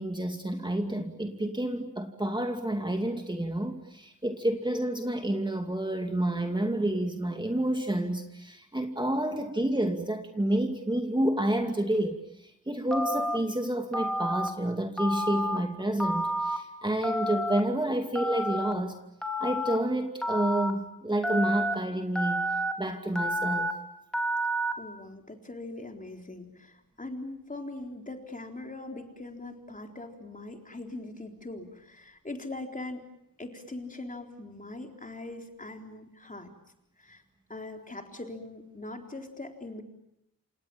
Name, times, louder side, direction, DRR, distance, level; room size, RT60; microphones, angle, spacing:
voice 1, 0.0-19.0 19.4-22.5 22.8-23.7, right 1 dB, 15° right, 4 dB, 2.5 m, -29 dB
Telephone, 12.9-13.4 13.9-14.5 15.0-15.6 16.0-16.6 17.0-17.6 18.1-18.7 19.2-19.8 20.2-20.7 21.2-21.7 22.1-22.7 23.1-23.7 24.1-24.7, equal, ahead, 3.8 m, -29 dB
voice 2, 24.8-33.0 33.4-36.5 37.0-37.2 37.5-39.8, left 2 dB, 25° left, 3 dB, 3.9 m, -41 dB
28.5 x 28.0 x 7.1 m, 0.82 s
wide cardioid pair, 105°, 34 cm